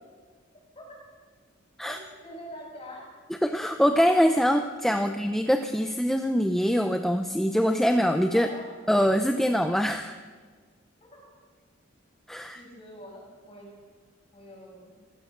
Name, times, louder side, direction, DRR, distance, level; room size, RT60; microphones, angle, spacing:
voice 1, 1.8-3.0 5.0-5.1 8.3-8.7 12.5-13.7 14.3-14.9, left 1 dB, 30° left, -3 dB, 7.6 m, -44 dB
voice 2, 3.4-8.5 8.9-10.2 12.3-12.6, equal, ahead, 6 dB, 0.6 m, -24 dB
28.0 x 16.0 x 6.5 m, 1.5 s
head